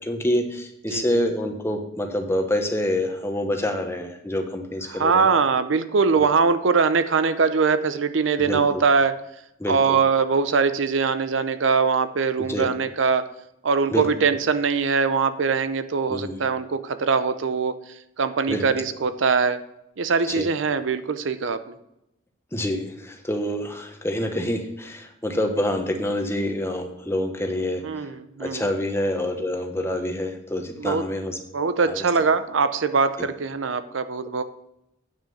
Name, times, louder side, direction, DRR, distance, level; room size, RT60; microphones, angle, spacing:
voice 1, 0.0-5.3 6.1-6.2 8.4-8.8 9.6-10.0 12.4-12.7 13.9-14.1 16.1-16.4 18.5-18.6 20.3-20.5 22.5-28.1 28.4-31.4 31.9-32.0, left 1 dB, 15° left, 4 dB, 1.0 m, -27 dB
voice 2, 0.9-1.2 4.9-9.2 9.7-13.3 13.6-19.6 20.0-21.8 27.8-28.7 30.8-31.1 31.5-34.4, right 5 dB, 75° right, 11 dB, 0.6 m, -22 dB
9.0 x 6.2 x 5.5 m, 0.85 s
head